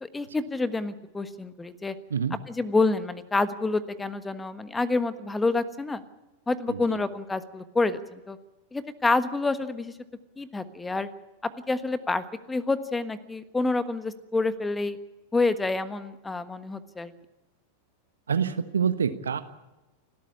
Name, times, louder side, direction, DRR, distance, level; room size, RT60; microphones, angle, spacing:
voice 1, 0.0-1.9 2.5-6.0 6.5-8.4 8.7-9.9 10.4-11.1 11.4-15.0 15.3-17.1, left 3 dB, 10° left, 14 dB, 1.4 m, -28 dB
voice 2, 18.3-19.4, right 7 dB, 70° right, 12 dB, 1.3 m, -27 dB
29.5 x 13.0 x 8.6 m, 1.0 s
figure-of-eight pair, 90°, 0 cm